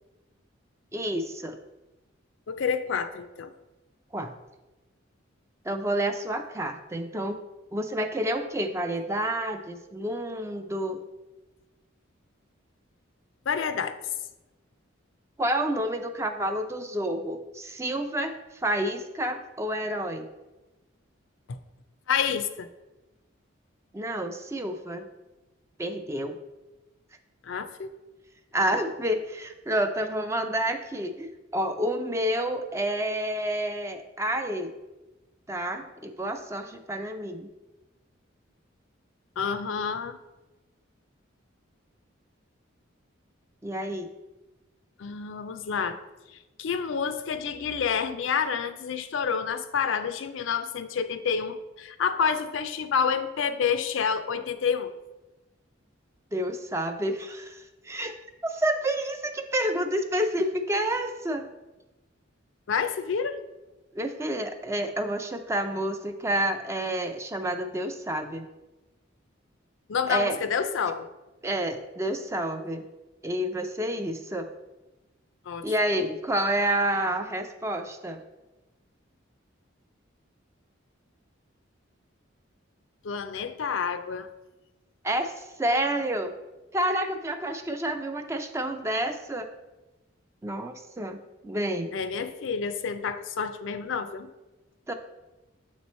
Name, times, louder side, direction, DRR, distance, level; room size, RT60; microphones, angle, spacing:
voice 1, 0.9-1.6 4.1-4.3 5.7-7.4 7.7-11.0 15.4-20.3 23.9-25.1 25.8-26.4 28.5-34.7 35.5-37.5 43.6-44.1 56.3-58.1 58.4-61.5 63.9-68.5 70.1-70.4 71.4-72.9 73.2-74.5 75.6-78.2 85.0-86.3 86.7-89.5 90.4-91.9 94.9-95.0, right 1 dB, 15° right, 6 dB, 0.3 m, -29 dB
voice 2, 2.5-3.5 13.5-14.0 21.5-21.6 22.1-22.7 27.4-27.9 39.4-40.2 45.0-46.0 46.6-54.9 62.7-63.4 69.9-71.1 75.5-75.7 83.0-84.3 91.9-94.3, left 6 dB, 70° left, 10 dB, 0.4 m, -28 dB
7.4 x 3.1 x 4.2 m, 1.1 s
head